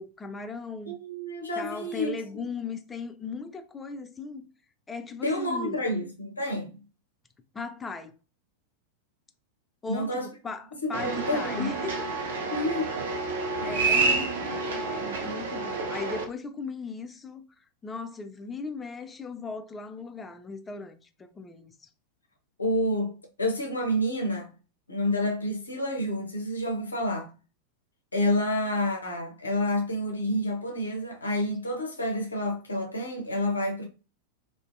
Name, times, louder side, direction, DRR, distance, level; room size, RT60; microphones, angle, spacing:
voice 1, 0.0-1.0 1.6-4.5 4.9-5.8 7.5-8.1 9.8-12.1 13.6-17.4 17.8-21.7, left 4 dB, 15° left, 0.3 m, -37 dB
voice 2, 0.9-2.5 5.2-6.8 9.9-10.3 10.8-11.7 12.5-13.0 13.6-14.0 22.6-24.5 24.9-27.3 28.1-33.9, left 1 dB, 80° left, 0.5 m, -29 dB
sound 1, 10.9-16.2, right 3 dB, 60° right, 0.4 m, -29 dB
2.5 x 2.1 x 2.4 m
figure-of-eight pair, 90°, 0 cm